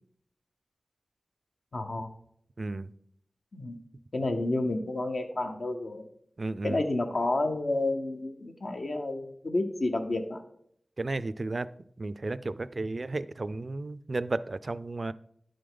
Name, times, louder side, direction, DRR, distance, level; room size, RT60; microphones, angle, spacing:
voice 1, 1.7-2.1 3.5-3.8 4.1-6.1 6.6-10.4, left 2 dB, 65° left, 4 dB, 0.8 m, -30 dB
voice 2, 2.6-2.9 6.4-6.8 11.0-11.7 12.0-15.1, right 2 dB, 50° right, 16 dB, 0.3 m, -33 dB
10.5 x 5.1 x 3.8 m, 0.69 s
wide cardioid pair, 60°, 0 cm